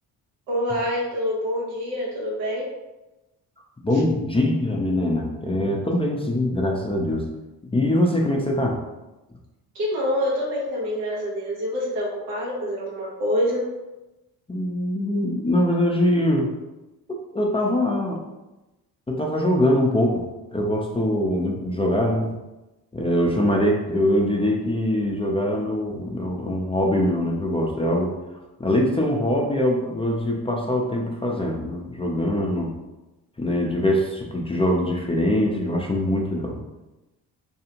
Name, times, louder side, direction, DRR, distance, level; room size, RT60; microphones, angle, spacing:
voice 1, 0.5-2.7 9.7-13.7, equal, 85° right, -4 dB, 1.0 m, -26 dB
voice 2, 3.8-7.3 7.7-8.8 14.5-16.5 17.1-18.2 19.1-20.2 20.5-22.3 22.9-28.1 28.6-32.7 33.4-36.6, left 1 dB, 10° left, -1 dB, 0.4 m, -23 dB
2.7 x 2.3 x 2.8 m, 1.0 s
hypercardioid pair, 45°, 49 cm